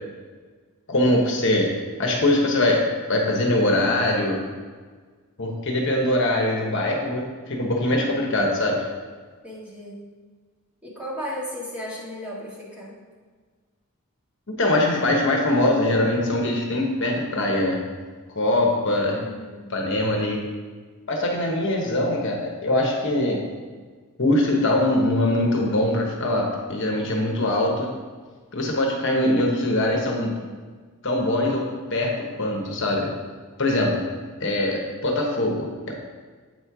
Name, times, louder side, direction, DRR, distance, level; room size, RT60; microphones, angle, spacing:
voice 1, 0.9-1.7 2.0-4.4 5.4-8.9 14.5-17.8 18.3-19.2 19.7-20.4 21.1-23.4 24.2-28.0 28.5-30.4 31.0-31.6 31.9-33.1 33.6-34.0 34.4-35.9, left 1 dB, 55° left, 0 dB, 1.0 m, -22 dB
voice 2, 7.9-8.4 9.4-10.0 10.8-12.9 19.1-19.7 30.1-30.5, equal, 5° right, -7 dB, 1.6 m, -36 dB
7.8 x 4.3 x 4.7 m, 1.5 s
head